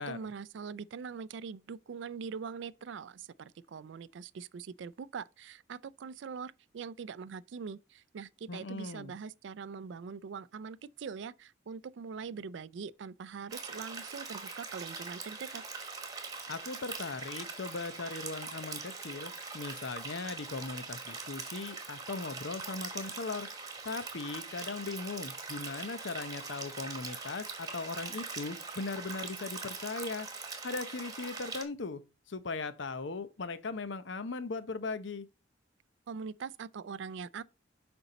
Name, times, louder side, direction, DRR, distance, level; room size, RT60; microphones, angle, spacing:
voice 1, 0.0-15.6 36.1-37.4, right 6 dB, 70° right, 0.4 m, -43 dB
voice 2, 8.5-9.1 16.5-23.5 23.8-30.3 30.6-32.0 32.3-35.3, left 3 dB, 70° left, 0.7 m, -38 dB
sound 1, 13.5-31.6, right 4 dB, 20° right, 1.2 m, -42 dB
7.0 x 5.3 x 4.0 m
head